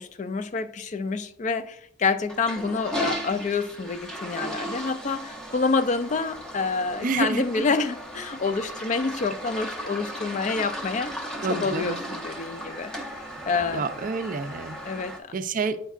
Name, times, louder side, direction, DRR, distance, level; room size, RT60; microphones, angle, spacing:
voice 1, 0.0-11.1 11.5-12.9 13.5-13.9 14.9-15.3, left 4 dB, 35° left, 0.3 m, -27 dB
Toilet flush, 2.3-15.2, equal, 5° left, 0.6 m, -36 dB
voice 2, 7.0-7.4 11.4-12.1 13.7-14.8 15.3-15.8, right 4 dB, 40° right, 0.4 m, -28 dB
9.1 x 4.5 x 2.4 m
head